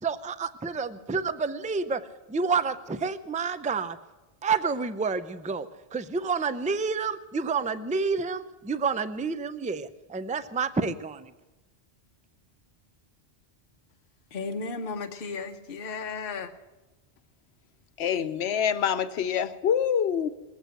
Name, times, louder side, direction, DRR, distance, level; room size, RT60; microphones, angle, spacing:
voice 1, 0.0-4.0 4.4-11.3, right 5 dB, 15° right, 12 dB, 0.3 m, -29 dB
voice 2, 14.3-16.5, left 4 dB, 60° left, 5 dB, 1.0 m, -34 dB
voice 3, 18.0-20.3, left 8 dB, 85° left, 12 dB, 1.0 m, -26 dB
20.5 x 8.4 x 7.9 m, 1.1 s
omnidirectional pair, 1.1 m